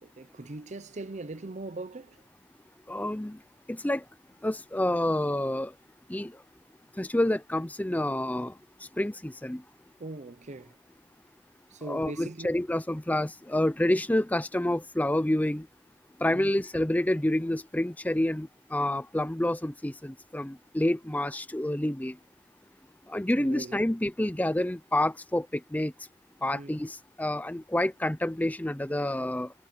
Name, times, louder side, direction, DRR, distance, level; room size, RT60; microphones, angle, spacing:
voice 1, 0.0-2.2 10.0-10.8 11.7-12.5 16.3-16.6 23.3-23.9 26.5-26.8, right 2 dB, 40° right, 0.7 m, -40 dB
voice 2, 2.9-3.4 3.7-4.0 4.4-5.7 6.1-6.4 7.0-8.5 9.0-9.6 11.9-15.7 16.2-22.2 23.1-25.9 26.4-29.5, left 1 dB, 10° left, 0.5 m, -28 dB
head